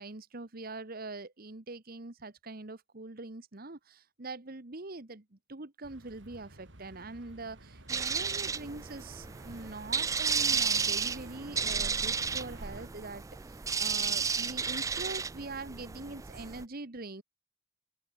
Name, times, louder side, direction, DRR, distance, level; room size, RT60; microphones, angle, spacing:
voice 1, 0.0-17.2, right 3 dB, 55° right, 1.5 m, -43 dB
sound 1, 5.8-12.9, right 1 dB, 85° right, 3.5 m, -52 dB
sound 2, 7.9-16.6, right 5 dB, 20° right, 0.3 m, -33 dB
open air
head